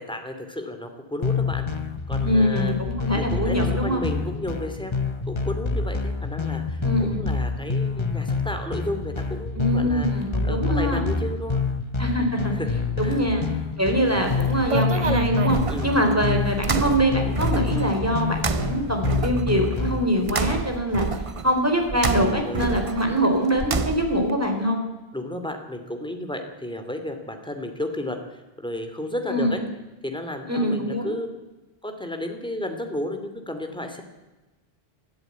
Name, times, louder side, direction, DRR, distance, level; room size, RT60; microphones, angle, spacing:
voice 1, 0.0-1.7 2.1-2.7 3.1-10.1 10.4-11.6 12.5-12.7 13.0-13.3 15.7-15.9 22.1-22.8 25.1-29.6 30.0-31.3 31.8-34.0, left 1 dB, 5° left, 5 dB, 2.6 m, -33 dB
sound 1, 1.2-20.0, left 4 dB, 30° left, 1.2 m, -27 dB
voice 2, 2.2-4.1 6.8-7.2 9.5-11.0 12.0-12.5 13.0-13.4 13.8-21.1 21.4-24.8 29.3-29.6 30.5-31.1, equal, 15° right, 3 dB, 4.1 m, -23 dB
sound 2, 14.1-24.3, right 4 dB, 35° right, 0.8 m, -29 dB
21.5 x 13.5 x 9.4 m, 1.1 s
omnidirectional pair, 1.0 m